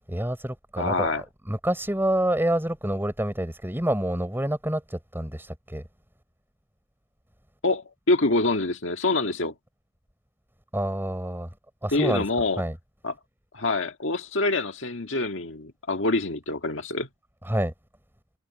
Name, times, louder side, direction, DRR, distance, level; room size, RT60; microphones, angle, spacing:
voice 1, 0.0-5.8 10.7-11.5 11.8-12.2 12.6-12.8 17.4-17.7, right 1 dB, 10° right, 4.3 m, -27 dB
voice 2, 0.8-1.2 7.6-9.5 11.9-12.6 13.0-13.1 13.5-17.1, left 2 dB, 70° left, 1.8 m, -25 dB
head